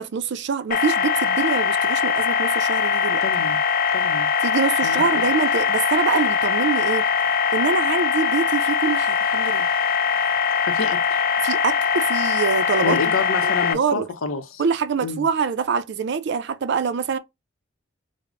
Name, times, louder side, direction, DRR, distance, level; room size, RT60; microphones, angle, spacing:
voice 1, 0.0-3.2 4.4-7.1 7.5-9.7 11.4-13.2 13.4-14.1 14.6-17.2, right 6 dB, 60° right, 0.4 m, -25 dB
sound 1, 0.7-13.7, left 6 dB, 50° left, 0.6 m, -21 dB
voice 2, 3.2-3.6 3.9-4.3 4.8-5.2 10.6-11.3 12.8-14.6 15.0-15.3, left 5 dB, 85° left, 0.7 m, -28 dB
4.8 x 2.1 x 2.4 m
head